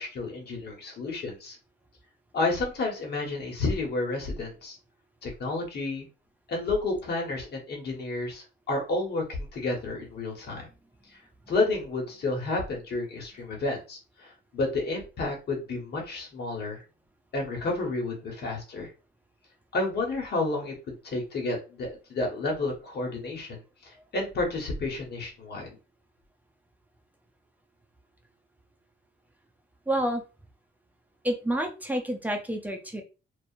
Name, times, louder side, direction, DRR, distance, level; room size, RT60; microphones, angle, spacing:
voice 1, 0.0-1.6 2.3-4.8 5.2-6.1 6.5-10.7 11.5-16.8 17.3-18.9 19.7-25.8, left 2 dB, 55° left, 0 dB, 1.2 m, -31 dB
voice 2, 29.9-30.2 31.2-33.0, right 1 dB, 10° right, 2 dB, 0.5 m, -29 dB
2.7 x 2.3 x 2.5 m, 0.32 s
cardioid pair, 90°, 20 cm